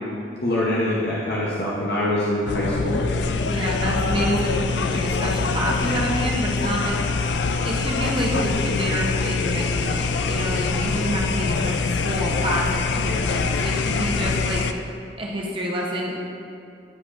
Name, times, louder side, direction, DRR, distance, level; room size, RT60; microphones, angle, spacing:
voice 1, 0.4-3.0, left 1 dB, 65° left, -6 dB, 0.8 m, -24 dB
sound 1, 2.5-14.7, left 4 dB, 85° left, 0.4 m, -24 dB
voice 2, 3.4-7.0 7.6-14.6 15.2-16.2, equal, 30° right, -3 dB, 0.7 m, -27 dB
10.5 x 4.8 x 2.5 m, 2.5 s
head